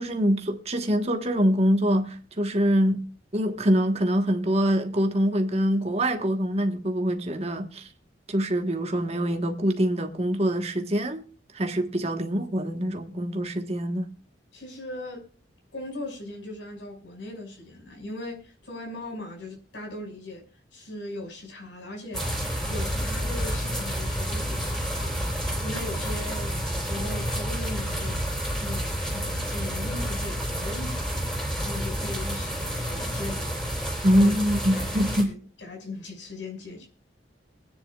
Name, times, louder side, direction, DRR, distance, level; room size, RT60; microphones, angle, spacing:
voice 1, 0.0-3.0 3.3-7.9 8.3-11.2 11.5-14.1 34.0-35.3, equal, 35° right, 1.4 m, -24 dB
voice 2, 14.5-15.2 15.7-20.4 20.7-34.3 34.7-36.9, left 2 dB, 90° left, 6.0 m, -39 dB
sound 1, 22.1-35.2, equal, 5° left, 3.8 m, -29 dB
23.5 x 9.6 x 2.4 m
head